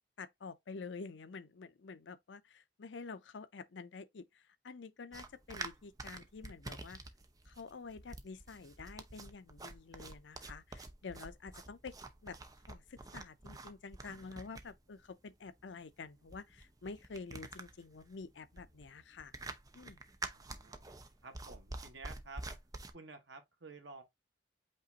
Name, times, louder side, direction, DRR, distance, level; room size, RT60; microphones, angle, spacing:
voice 1, 0.2-7.0 7.5-11.9 12.2-12.4 12.7-19.3 19.7-20.0, left 4 dB, 85° left, 0.5 m, -49 dB
sound 1, 5.1-22.9, right 2 dB, 20° right, 0.5 m, -48 dB
voice 2, 20.3-20.8 21.2-22.5 22.9-24.0, right 3 dB, 85° right, 1.2 m, -52 dB
5.4 x 2.5 x 3.9 m
head